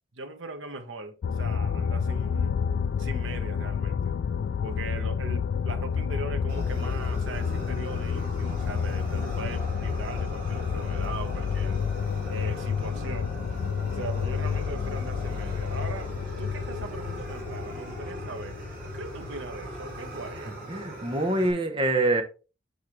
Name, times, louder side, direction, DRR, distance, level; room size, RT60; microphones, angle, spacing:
voice 1, 0.1-2.6 3.0-4.2 4.6-11.8 12.3-13.3 13.9-16.1 16.4-18.6 18.9-20.6, right 3 dB, 85° right, 1.2 m, -40 dB
sound 1, 1.2-20.0, left 6 dB, 65° left, 0.3 m, -30 dB
sound 2, 6.0-20.4, left 3 dB, 45° left, 0.8 m, -44 dB
Fire, 6.5-21.5, right 1 dB, 50° right, 3.5 m, -41 dB
voice 2, 20.7-22.2, right 2 dB, 25° right, 1.0 m, -25 dB
6.8 x 5.6 x 3.2 m
head